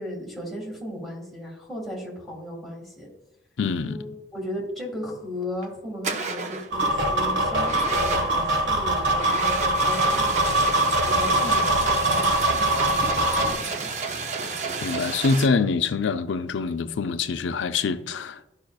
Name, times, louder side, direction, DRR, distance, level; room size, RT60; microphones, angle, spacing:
voice 1, 0.0-3.1 3.8-13.9, left 1 dB, ahead, 1.9 m, -36 dB
voice 2, 3.6-4.0 14.8-18.4, left 4 dB, 75° left, 0.5 m, -25 dB
sound 1, 5.4-5.7 6.0-6.7 7.6-8.5 9.1-15.5, right 4 dB, 35° right, 0.6 m, -31 dB
sound 2, 6.7-13.5, right 1 dB, 70° right, 1.2 m, -23 dB
11.5 x 5.6 x 2.3 m
head